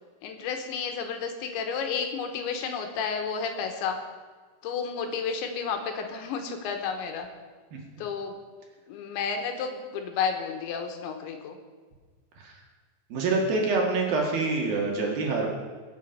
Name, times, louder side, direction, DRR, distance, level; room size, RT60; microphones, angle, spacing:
voice 1, 0.2-4.0 4.6-7.3 8.0-8.4 8.9-11.6, left 6 dB, 75° left, 5 dB, 3.4 m, -31 dB
voice 2, 13.1-15.5, right 3 dB, 60° right, -1 dB, 3.2 m, -26 dB
22.5 x 7.6 x 5.7 m, 1.5 s
omnidirectional pair, 5.5 m